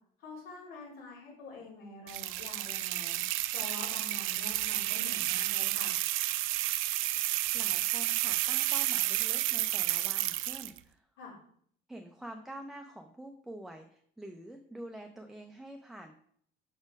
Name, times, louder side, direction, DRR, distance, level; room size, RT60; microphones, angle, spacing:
voice 1, 0.2-3.2 3.5-5.9 11.2-11.4, left 3 dB, 80° left, -6 dB, 3.2 m, -46 dB
sound 1, 2.1-10.8, right 16 dB, 85° right, 0.4 m, -31 dB
voice 2, 7.5-11.1 11.9-16.1, right 1 dB, ahead, 4 dB, 0.4 m, -47 dB
6.1 x 4.3 x 5.2 m, 0.62 s
cardioid pair, 150°, 20 cm